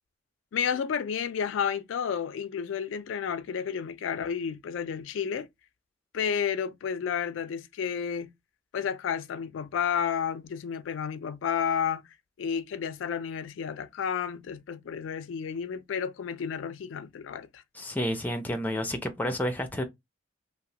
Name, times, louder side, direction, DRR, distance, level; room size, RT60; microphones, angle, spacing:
voice 1, 0.5-5.5 6.1-8.3 8.7-12.0 12.4-17.6, left 7 dB, 90° left, 0.3 m, -31 dB
voice 2, 17.8-19.8, equal, 10° left, 0.5 m, -30 dB
2.9 x 2.0 x 2.7 m
head